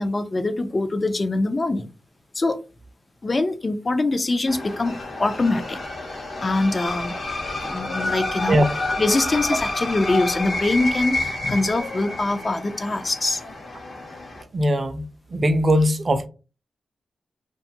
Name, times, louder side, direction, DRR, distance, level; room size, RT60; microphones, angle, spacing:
voice 1, 0.0-1.9 2.3-2.6 3.2-5.8 6.4-7.2 7.6-8.6 9.0-13.4, left 2 dB, 35° left, 0.4 m, -23 dB
sound 1, 4.5-14.4, left 2 dB, 55° left, 0.8 m, -29 dB
voice 2, 14.5-15.0 15.3-16.3, equal, 40° right, 0.4 m, -20 dB
2.5 x 2.3 x 2.8 m
cardioid pair, 75°, 0 cm